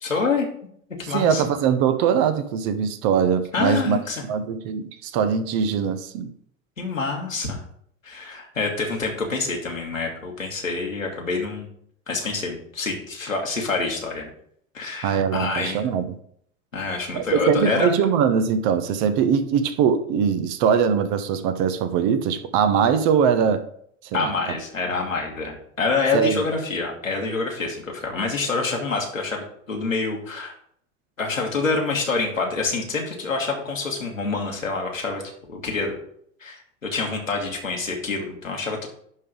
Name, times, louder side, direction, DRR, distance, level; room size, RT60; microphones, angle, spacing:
voice 1, 0.0-0.5 1.1-1.4 3.5-4.2 6.8-7.6 8.0-11.7 12.1-14.3 14.7-15.8 16.7-17.9 24.1-30.5 31.2-35.2 35.5-36.0 36.4-38.9, left 4 dB, 85° left, 2.0 m, -26 dB
voice 2, 1.1-4.0 4.2-6.3 15.0-16.1 17.1-23.6 24.1-24.3 26.1-26.4, right 7 dB, 45° right, 1.0 m, -21 dB
11.0 x 3.8 x 5.0 m
figure-of-eight pair, 80°, 38 cm